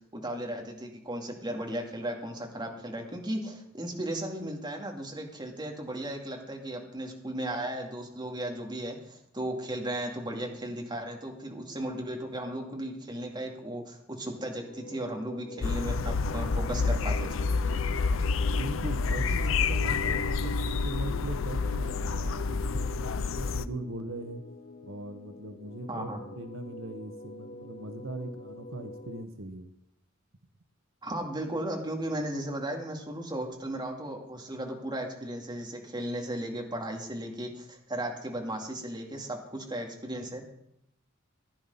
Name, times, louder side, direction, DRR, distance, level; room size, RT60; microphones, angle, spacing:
voice 1, 0.1-17.5 25.9-26.2 31.0-40.4, right 1 dB, 20° right, 2 dB, 2.2 m, -36 dB
sound 1, 14.3-29.2, left 2 dB, 45° left, 0.9 m, -47 dB
sound 2, 15.6-23.6, left 4 dB, 70° left, 0.6 m, -28 dB
voice 2, 18.5-24.4 24.8-26.1 26.3-29.7, right 2 dB, 75° right, 8 dB, 1.1 m, -40 dB
15.0 x 10.5 x 5.4 m, 0.75 s
head